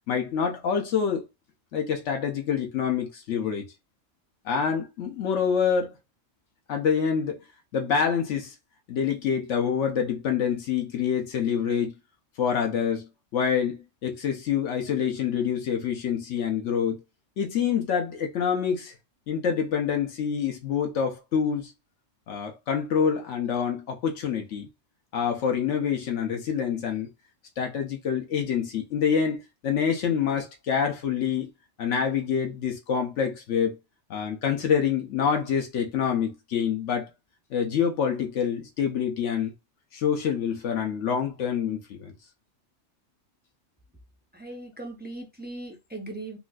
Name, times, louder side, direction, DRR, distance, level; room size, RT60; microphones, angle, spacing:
voice 1, 0.1-1.2 1.7-3.7 4.4-5.9 6.7-7.4 7.7-8.5 8.9-11.9 12.4-17.0 17.4-18.9 19.3-21.7 22.3-24.7 25.1-27.1 27.6-29.4 29.6-31.5 31.8-33.8 34.1-37.1 37.5-39.5 39.9-42.1, left 7 dB, 75° left, 1.0 m, -26 dB
voice 2, 44.3-46.4, right 2 dB, 15° right, 0.4 m, -39 dB
3.8 x 2.5 x 2.3 m
omnidirectional pair, 1.3 m